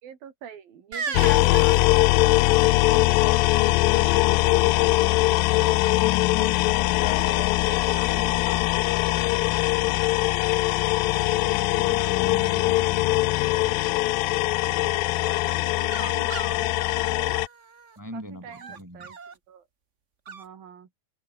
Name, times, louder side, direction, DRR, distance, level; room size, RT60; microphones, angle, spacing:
voice 1, 0.0-2.6 7.0-8.1 8.9-9.0 11.8-12.5 15.1-16.9 17.2-17.4 18.1-19.2 19.5-19.7 20.3-20.9, right 8 dB, 75° right, 4.5 m, -44 dB
sound 1, 0.9-2.7 5.8-6.2 7.0-7.8 8.4-9.3 10.0-10.2 10.4-10.9 11.2-11.8 15.5-18.0 18.5-19.4 20.3-20.5, right 5 dB, 45° right, 0.9 m, -39 dB
sound 2, 1.1-17.5, left 19 dB, 80° left, 2.3 m, -21 dB
voice 2, 5.5-10.3 11.3-13.5 18.0-19.1, equal, 5° right, 2.3 m, -43 dB
omnidirectional pair, 4.2 m